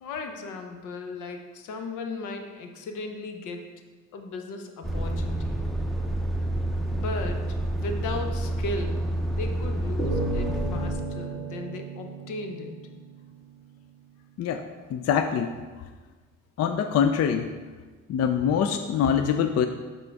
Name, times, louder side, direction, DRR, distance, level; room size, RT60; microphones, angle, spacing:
voice 1, 0.0-3.8 4.1-5.6 6.9-12.8, left 3 dB, 85° left, 5 dB, 0.9 m, -36 dB
Truck, 4.8-10.9, right 1 dB, ahead, 0.7 m, -28 dB
sound 1, 10.0-13.4, right 2 dB, 25° left, 1.8 m, -34 dB
voice 2, 14.9-15.6 16.6-17.5 18.1-19.7, left 8 dB, 55° left, 7 dB, 0.4 m, -24 dB
7.4 x 3.7 x 4.7 m, 1.4 s
cardioid pair, 90°, 30 cm